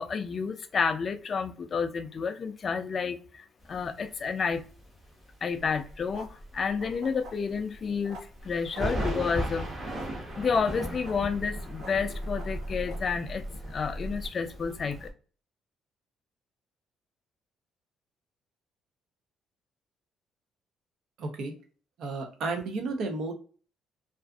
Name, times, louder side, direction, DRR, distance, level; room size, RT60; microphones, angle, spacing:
voice 1, 0.0-4.6 5.4-9.7 10.3-13.4 13.7-15.1, left 5 dB, 40° left, 0.3 m, -30 dB
sound 1, 3.6-5.3 5.6-6.0 6.3-6.4 6.8-6.9 8.4-15.1, equal, 30° right, 0.9 m, -37 dB
sound 2, 5.6-14.3, equal, 90° right, 1.1 m, -41 dB
voice 2, 21.2-21.5 22.0-23.3, right 3 dB, 65° right, 0.6 m, -32 dB
2.4 x 2.4 x 2.3 m
cardioid pair, 120°, 0 cm